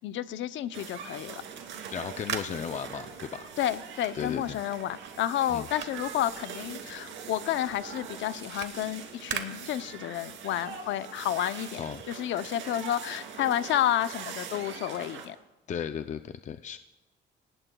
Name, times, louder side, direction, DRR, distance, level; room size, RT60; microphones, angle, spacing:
voice 1, 0.0-1.4 3.6-15.4, left 12 dB, 80° left, 13 dB, 0.7 m, -31 dB
sound 1, 0.7-15.3, right 7 dB, 85° right, 2.7 m, -43 dB
sound 2, 1.5-7.1 7.4-10.3, right 7 dB, 65° right, 1.4 m, -41 dB
voice 2, 1.9-3.5 4.1-4.6 5.5-5.6 11.8-12.0 15.7-16.8, left 8 dB, 40° left, 9 dB, 0.5 m, -35 dB
27.0 x 18.5 x 2.3 m, 1.1 s
cardioid pair, 110°, 19 cm